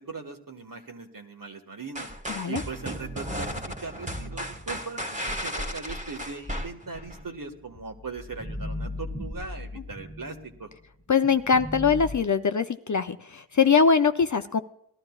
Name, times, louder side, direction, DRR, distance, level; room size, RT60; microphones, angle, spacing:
voice 1, 0.0-2.1 2.5-10.7, right 4 dB, 45° right, 5 dB, 1.7 m, -39 dB
sound 1, 1.9-7.2, equal, 15° right, 1.7 m, -34 dB
voice 2, 2.3-2.6 11.1-14.6, left 5 dB, 40° left, 8 dB, 0.6 m, -22 dB
sound 2, 6.4-10.8 11.2-12.2, left 1 dB, 15° left, 1.3 m, -38 dB
19.0 x 12.5 x 2.4 m, 0.76 s
cardioid pair, 40°, 48 cm